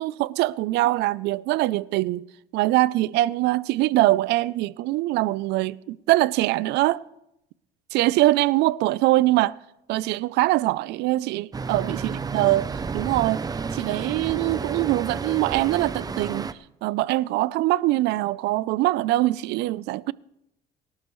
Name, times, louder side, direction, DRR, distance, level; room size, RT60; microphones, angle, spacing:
voice 1, 0.0-2.2 2.5-7.0 7.9-9.6 9.9-13.4 13.7-16.5 16.8-20.1, right 17 dB, 85° right, 0.5 m, -23 dB
Traffic noise roadway noise, 11.5-16.5, right 5 dB, 20° right, 0.6 m, -31 dB
24.5 x 12.0 x 3.1 m
cardioid pair, 110°, 17 cm